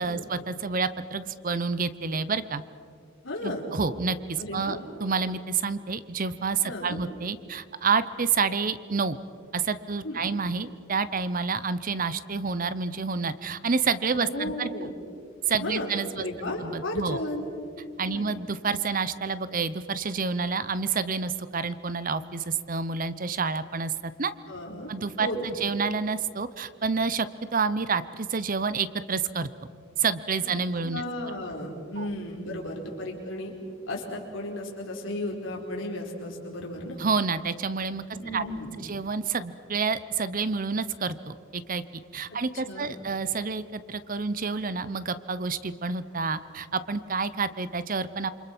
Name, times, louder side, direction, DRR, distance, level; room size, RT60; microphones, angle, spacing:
voice 1, 0.0-2.6 3.4-9.2 9.5-14.7 15.5-16.2 16.6-17.2 18.0-24.3 24.9-29.5 30.0-31.0 32.0-32.1 37.0-38.0 38.3-38.4 38.8-41.8 42.1-48.3, right 5 dB, 40° right, 15 dB, 0.8 m, -29 dB
voice 2, 3.2-3.6 4.4-4.8 6.6-7.0 10.0-10.2 14.2-14.9 15.6-17.5 18.1-18.2 24.5-24.9 25.2-25.5 30.8-33.5 33.9-37.0 38.1-38.8 42.5-43.0, left 1 dB, 70° left, 0 dB, 4.7 m, -34 dB
28.0 x 25.5 x 6.0 m, 2.3 s
head